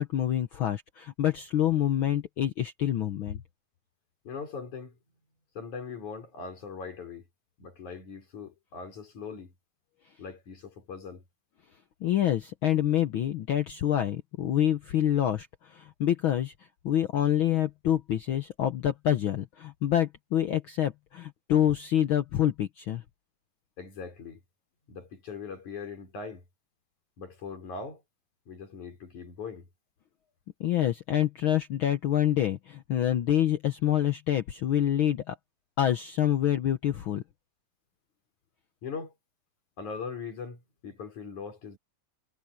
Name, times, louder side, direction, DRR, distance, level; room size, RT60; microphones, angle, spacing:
voice 1, 0.0-3.4 12.0-16.5 16.8-23.0 30.6-35.4 35.8-37.2, left 11 dB, 85° left, 1.1 m, -27 dB
voice 2, 4.2-5.0 5.5-7.3 7.6-9.5 10.2-11.2 23.8-24.4 24.9-26.4 27.2-28.0 28.5-29.7 38.8-39.1 39.8-41.8, left 5 dB, 70° left, 6.6 m, -40 dB
omnidirectional pair, 3.5 m